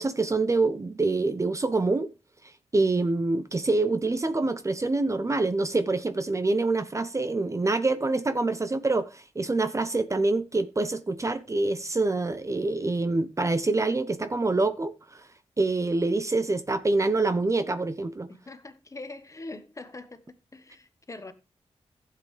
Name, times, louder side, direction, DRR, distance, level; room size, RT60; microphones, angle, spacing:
voice 1, 0.0-2.1 2.7-15.2 15.6-18.3, right 3 dB, 30° right, 0.7 m, -26 dB
voice 2, 18.3-21.3, left 2 dB, 30° left, 1.2 m, -43 dB
15.0 x 7.6 x 3.3 m
wide cardioid pair, 120°, 11 cm